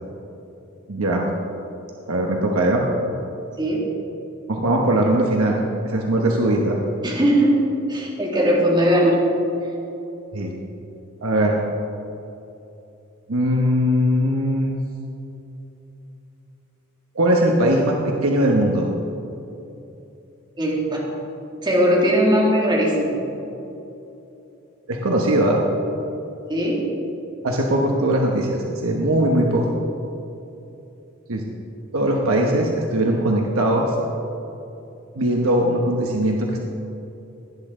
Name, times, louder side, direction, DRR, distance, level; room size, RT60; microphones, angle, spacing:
voice 1, 0.9-1.3 2.1-2.9 4.5-6.8 10.3-10.5 11.2-11.6 13.3-14.8 17.1-18.9 24.9-25.6 27.4-29.8 31.3-31.4 31.9-33.9 35.2-36.6, right 1 dB, 80° right, 0 dB, 1.1 m, -20 dB
voice 2, 3.6-3.9 7.0-7.6 7.9-9.2 20.6-21.1 21.6-23.2 26.5-26.9, equal, 20° right, -4 dB, 2.3 m, -19 dB
17.5 x 10.0 x 3.8 m, 2.9 s
head